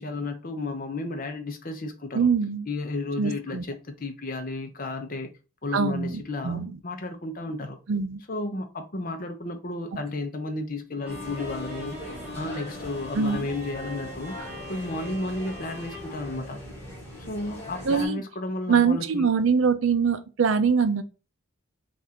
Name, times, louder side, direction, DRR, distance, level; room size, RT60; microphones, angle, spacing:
voice 1, 0.0-2.3 2.7-5.3 5.6-7.8 8.3-12.0 12.3-16.6 17.2-19.3, left 2 dB, 40° left, 0.7 m, -33 dB
voice 2, 2.1-2.7 3.2-3.6 5.7-6.8 7.9-8.2 13.1-13.5 17.8-18.2 18.7-21.0, right 5 dB, 65° right, 0.5 m, -23 dB
Bowed string instrument, 11.0-17.3, left 2 dB, 5° right, 0.9 m, -41 dB
sound 1, 11.1-18.1, left 1 dB, 10° left, 1.5 m, -41 dB
3.7 x 2.5 x 4.2 m
head